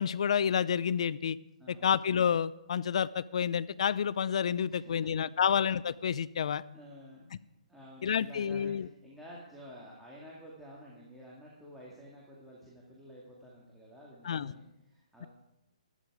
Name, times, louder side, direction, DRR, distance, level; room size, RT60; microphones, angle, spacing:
voice 1, 0.0-1.4 1.7-6.6 8.0-8.9 14.2-14.5, left 8 dB, 55° left, 20 dB, 0.5 m, -29 dB
voice 2, 1.6-1.9 4.7-5.1 6.7-7.3 7.7-15.3, equal, ahead, -7 dB, 2.2 m, -51 dB
13.5 x 12.5 x 4.9 m, 0.88 s
hypercardioid pair, 160°, 4 cm